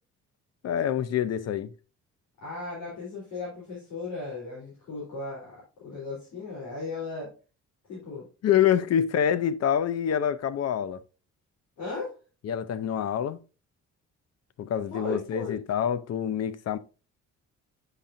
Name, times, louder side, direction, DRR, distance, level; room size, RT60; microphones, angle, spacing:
voice 1, 0.6-1.7 8.4-11.0 12.4-13.4 14.6-16.8, left 9 dB, 55° left, 0.6 m, -26 dB
voice 2, 2.4-7.3 7.9-8.3 8.9-9.0 11.8-12.1 14.9-15.6, left 3 dB, 90° left, 3.5 m, -36 dB
8.1 x 5.8 x 2.5 m
cardioid pair, 90°, 30 cm